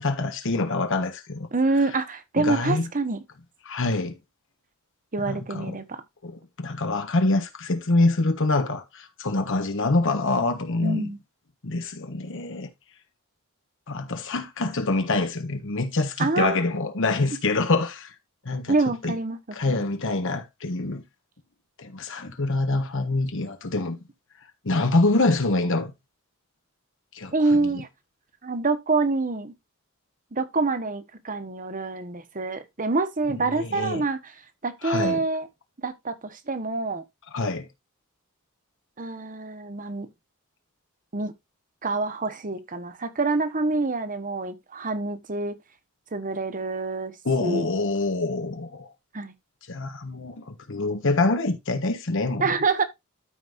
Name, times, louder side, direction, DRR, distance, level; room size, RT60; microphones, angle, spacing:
voice 1, 0.0-1.5 2.4-2.9 3.6-4.2 5.2-5.8 6.2-11.1 11.6-12.7 13.9-18.1 18.4-18.8 19.0-19.1 19.5-21.0 21.8-24.0 24.6-25.9 27.1-27.8 33.3-34.0 34.8-35.2 37.3-37.7 47.2-48.9 49.7-52.4, left 2 dB, 60° left, 1.3 m, -25 dB
voice 2, 1.5-3.2 5.1-6.0 10.8-11.2 16.2-16.6 18.7-19.4 19.7-19.8 27.3-27.9 28.4-29.5 30.3-34.2 34.6-35.5 35.8-37.0 39.0-40.1 41.1-41.3 41.8-45.5 46.1-47.1 47.4-47.7 49.1-49.3 52.4-52.8, right 3 dB, 40° right, 1.2 m, -26 dB
13.0 x 5.3 x 2.6 m
head